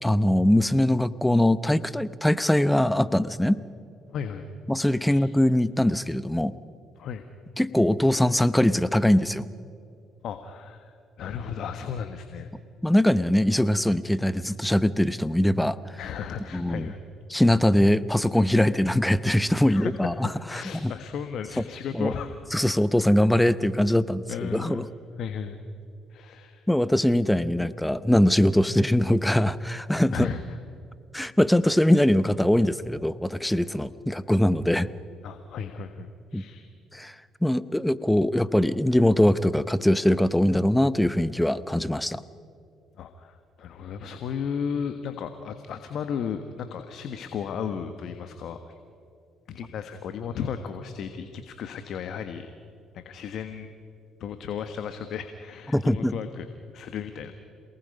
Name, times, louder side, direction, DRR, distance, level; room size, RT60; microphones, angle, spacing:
voice 1, 0.0-3.6 4.7-6.5 7.6-9.5 12.8-16.0 16.5-16.9 17.3-20.9 21.6-21.7 22.0-22.1 22.5-24.9 26.7-30.3 31.1-34.9 36.3-36.4 36.9-37.1 37.4-42.2 55.7-56.1, left 1 dB, 5° left, 16 dB, 0.8 m, -22 dB
voice 2, 4.1-4.5 5.0-5.3 7.0-7.2 10.2-12.5 16.0-17.0 19.7-22.3 24.3-24.9 25.2-25.6 26.1-26.7 30.1-30.6 35.2-36.7 43.0-48.8 49.5-52.5 52.9-53.7 54.2-56.5 56.7-57.3, left 7 dB, 65° left, 8 dB, 1.3 m, -35 dB
27.5 x 19.0 x 5.4 m, 2.5 s
supercardioid pair, 60°, 0 cm